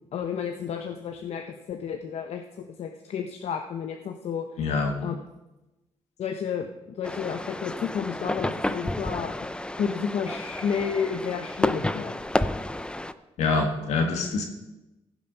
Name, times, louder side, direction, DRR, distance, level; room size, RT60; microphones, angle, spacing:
voice 1, 0.1-4.5 5.0-5.1 6.2-9.5 9.8-12.2, left 7 dB, 70° left, 5 dB, 0.9 m, -31 dB
voice 2, 4.6-4.9 13.4-14.4, left 3 dB, 85° left, 4 dB, 1.9 m, -25 dB
sound 1, 7.0-13.1, left 1 dB, 10° left, 0.5 m, -30 dB
15.5 x 7.3 x 5.4 m, 1.0 s
cardioid pair, 90°, 11 cm